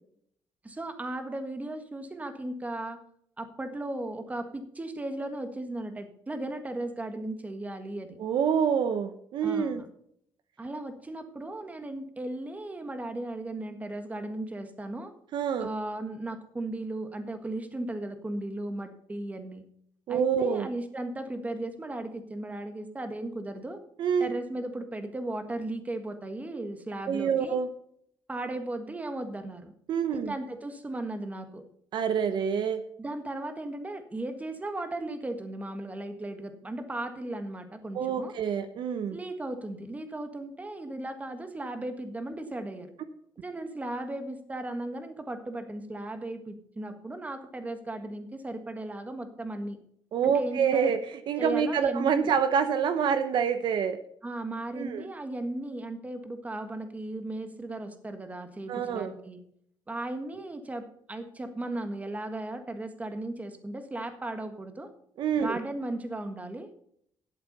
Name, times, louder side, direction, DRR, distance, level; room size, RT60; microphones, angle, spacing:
voice 1, 0.6-3.0 3.4-8.2 9.4-9.9 10.6-15.1 15.6-19.6 20.1-23.8 24.2-27.6 28.3-29.7 30.1-31.6 33.0-38.3 39.1-42.9 43.4-49.8 50.2-50.9 51.4-52.3 54.2-59.4 59.9-64.9 65.3-66.7, right 1 dB, 20° right, 7 dB, 1.6 m, -36 dB
voice 2, 8.2-9.8 15.3-15.7 20.1-20.7 24.0-24.3 27.1-27.7 29.9-30.3 31.9-32.8 37.9-39.2 50.1-54.0 54.8-55.0 58.7-59.1 65.2-65.6, right 7 dB, 65° right, 10 dB, 0.9 m, -27 dB
12.0 x 8.1 x 5.4 m, 0.68 s
cardioid pair, 110°, 8 cm